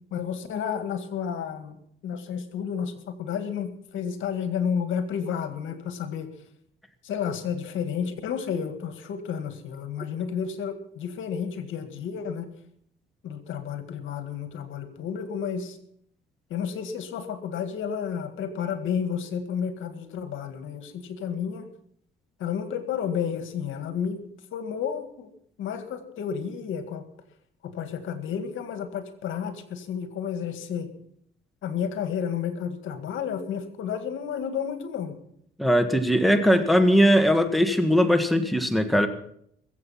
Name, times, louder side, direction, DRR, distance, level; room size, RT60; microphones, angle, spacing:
voice 1, 0.1-6.3 7.0-12.5 13.2-15.8 16.5-21.7 22.4-24.2 24.5-25.3 25.6-27.1 27.6-30.9 31.6-35.2, left 7 dB, 80° left, 9 dB, 1.9 m, -31 dB
voice 2, 35.6-39.1, equal, ahead, 6 dB, 1.6 m, -20 dB
22.0 x 7.9 x 5.8 m, 0.68 s
cardioid pair, 90°, 20 cm